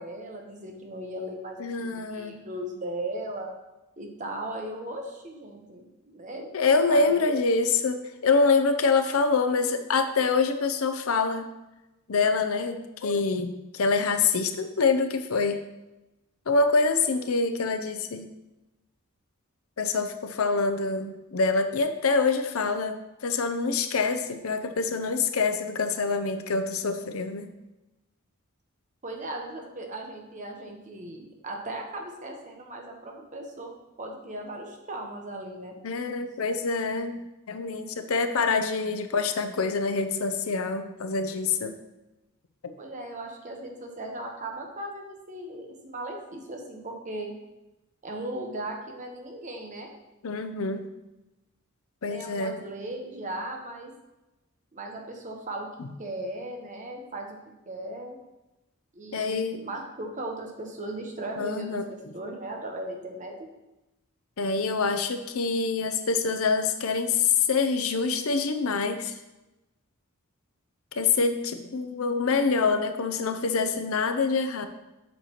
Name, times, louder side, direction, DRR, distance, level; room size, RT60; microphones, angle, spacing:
voice 1, 0.0-3.5 4.0-6.5 6.9-7.2 29.0-33.7 34.0-35.7 42.8-47.3 48.0-49.9 52.1-53.9 54.7-55.7 56.0-57.4 57.7-58.2 58.9-63.5, right 1 dB, 35° right, 2 dB, 1.1 m, -37 dB
voice 2, 1.6-2.4 6.5-11.5 12.1-15.6 16.5-18.3 19.8-27.5 35.8-37.2 37.5-41.7 42.6-42.7 50.2-50.8 52.0-52.6 55.8-55.9 59.1-59.6 61.4-61.8 64.4-69.1 70.9-74.7, left 4 dB, 75° left, 8 dB, 0.6 m, -25 dB
7.8 x 6.4 x 3.0 m, 0.99 s
head